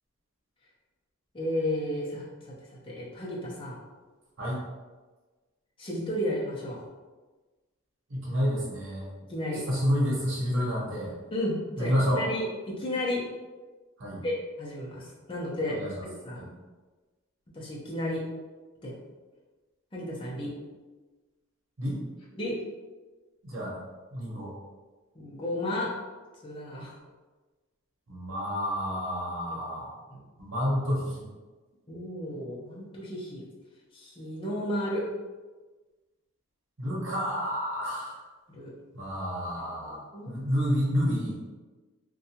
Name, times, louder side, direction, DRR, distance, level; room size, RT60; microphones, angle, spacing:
voice 1, 1.3-2.5 2.8-3.8 5.8-6.8 9.3-9.6 11.3-13.3 14.2-16.4 17.5-18.2 18.8-18.9 19.9-20.5 22.4-22.6 25.1-26.0 26.4-26.9 29.5-29.6 30.1-30.2 31.9-33.4 33.9-35.1 38.5-38.7 40.1-40.3, left 1 dB, 25° left, -5 dB, 0.5 m, -33 dB
voice 2, 8.1-9.1 9.7-11.1 11.8-12.3 14.0-14.2 15.7-16.0 16.3-16.5 21.8-22.0 23.4-23.8 24.1-24.5 28.1-29.9 30.4-31.3 36.8-38.2 38.9-41.4, equal, 70° right, -4 dB, 0.9 m, -29 dB
2.6 x 2.2 x 2.7 m, 1.3 s
head